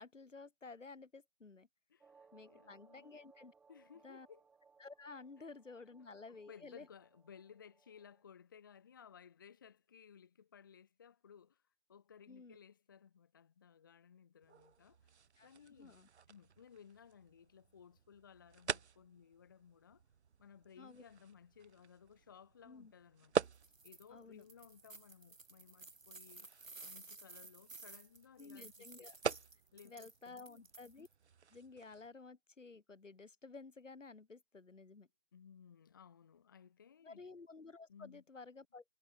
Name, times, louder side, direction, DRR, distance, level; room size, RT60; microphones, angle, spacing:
voice 1, 0.0-1.7 2.3-3.5 4.0-4.3 4.8-6.9 12.3-12.6 15.4-16.1 20.8-21.0 22.6-22.9 24.1-24.4 28.4-29.2 29.8-31.1 31.5-35.1 37.0-39.0, left 4 dB, 70° left, 3.7 m, -53 dB
voice 2, 1.9-3.1 3.7-4.4 6.5-11.6 11.9-15.1 15.4-16.0 16.3-20.0 20.4-23.4 23.8-26.5 26.8-29.1 29.7-30.7 35.3-37.2 37.9-38.2, left 7 dB, 15° left, 1.5 m, -60 dB
sound 1, 2.0-8.2, right 5 dB, 5° right, 3.7 m, -67 dB
sound 2, 14.4-32.1, right 6 dB, 60° right, 0.6 m, -46 dB
sound 3, 23.5-24.0 24.4-31.1, right 3 dB, 90° right, 5.8 m, -55 dB
figure-of-eight pair, 170°, 38 cm